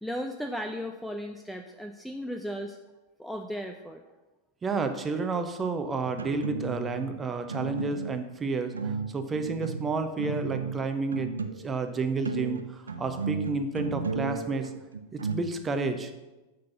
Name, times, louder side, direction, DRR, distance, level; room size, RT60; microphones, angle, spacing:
voice 1, 0.0-2.8 3.2-4.0, equal, ahead, 4 dB, 0.5 m, -35 dB
voice 2, 4.6-14.7 15.1-16.1, right 4 dB, 20° right, 7 dB, 0.9 m, -31 dB
sound 1, 6.0-7.1 7.5-8.3 8.7-11.7 12.0-15.4, right 4 dB, 75° right, 0.6 m, -34 dB
6.5 x 6.0 x 6.9 m, 1.1 s
figure-of-eight pair, 90°, 0 cm